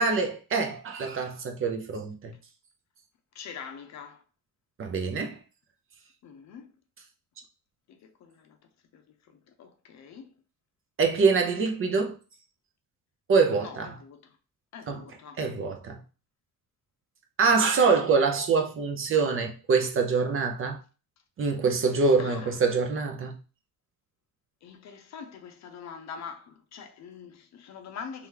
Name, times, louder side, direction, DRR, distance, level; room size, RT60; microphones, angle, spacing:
voice 1, 0.0-2.3 4.8-5.4 11.0-12.1 13.3-13.9 14.9-15.0 15.4-16.0 17.4-20.8 21.4-23.4, right 4 dB, 35° right, 0.7 m, -25 dB
voice 2, 3.3-4.2 6.2-6.7 7.9-8.6 8.9-10.3 13.6-14.2 14.7-15.5 22.2-22.6 24.6-28.3, left 6 dB, 50° left, 0.7 m, -44 dB
3.4 x 3.0 x 3.7 m
cardioid pair, 150°, 36 cm